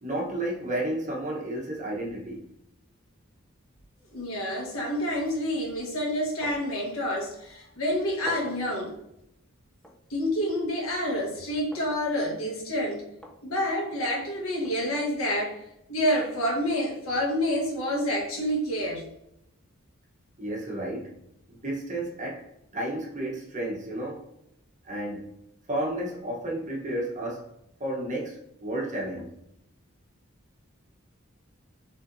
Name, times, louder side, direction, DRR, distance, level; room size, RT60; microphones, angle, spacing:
voice 1, 0.0-2.5 20.4-21.2 21.5-22.5 22.7-24.2 24.8-25.3 25.7-27.5 27.8-29.3, right 1 dB, 35° right, 1.1 m, -32 dB
voice 2, 4.1-9.0 10.1-13.0 13.4-15.6 15.9-19.1, equal, 85° left, 1.3 m, -28 dB
sound 1, 6.4-6.8 7.1-7.2 8.3-8.7 9.8-10.0 11.7-12.1 13.2-13.4 14.6-14.8, left 1 dB, 5° left, 0.5 m, -44 dB
5.8 x 3.3 x 2.7 m
head